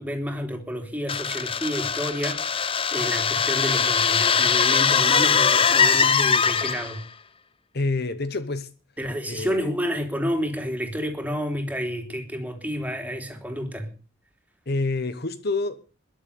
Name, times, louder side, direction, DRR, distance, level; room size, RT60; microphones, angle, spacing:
voice 1, 0.0-7.0 9.0-13.9, equal, 10° right, 3.5 m, -30 dB
sound 1, 1.1-7.0, left 6 dB, 30° left, 0.8 m, -21 dB
voice 2, 7.7-8.7 9.3-9.7 14.7-15.8, left 3 dB, 55° left, 1.1 m, -27 dB
21.5 x 7.3 x 6.9 m
head